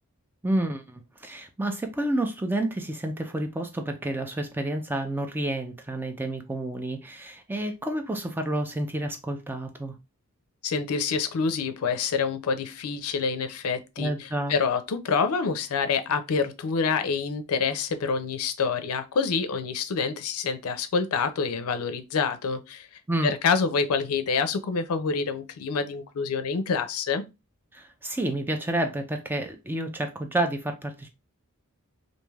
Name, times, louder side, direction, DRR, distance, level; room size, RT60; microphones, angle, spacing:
voice 1, 0.4-9.9 14.0-14.6 23.1-23.3 27.7-31.1, right 1 dB, 10° right, 0.4 m, -29 dB
voice 2, 10.6-22.9 23.2-27.2, left 5 dB, 80° left, 0.4 m, -27 dB
3.2 x 2.5 x 2.3 m
head